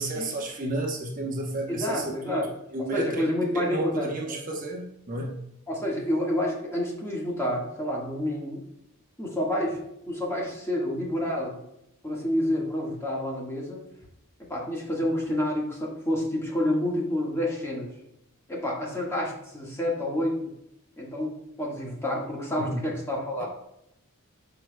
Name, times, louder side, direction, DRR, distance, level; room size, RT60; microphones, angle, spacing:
voice 1, 0.0-3.2 3.5-5.4 22.6-22.9 23.4-23.5, right 2 dB, 40° right, 0 dB, 0.9 m, -32 dB
voice 2, 1.7-2.5 2.9-4.4 5.7-8.6 9.2-9.8 10.1-11.6 12.0-13.8 14.5-17.9 18.5-20.4 21.0-23.5, left 1 dB, 10° left, -3 dB, 1.5 m, -29 dB
12.5 x 4.6 x 2.2 m, 0.81 s
head